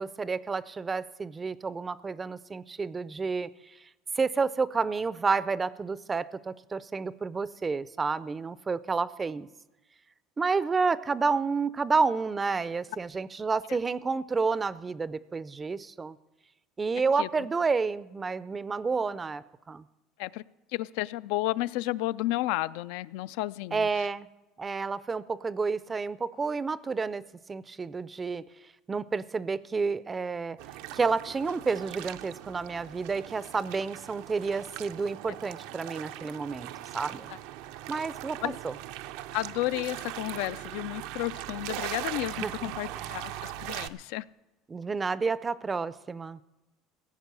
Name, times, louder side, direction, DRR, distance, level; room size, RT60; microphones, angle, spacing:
voice 1, 0.0-3.5 4.2-9.5 10.4-16.2 16.8-19.8 23.7-24.3 24.6-28.4 28.9-30.6 30.9-36.7 36.9-37.3 37.9-38.7 42.4-42.5 44.7-46.4, right 4 dB, 20° right, 18 dB, 0.4 m, -30 dB
voice 2, 20.7-24.1 37.3-37.4 38.4-38.6 39.3-44.2, left 17 dB, 75° left, 17 dB, 0.3 m, -32 dB
sound 1, 30.6-43.9, right 14 dB, 75° right, 0.6 m, -40 dB
16.0 x 8.0 x 6.8 m, 1.1 s
supercardioid pair, 130°, 0 cm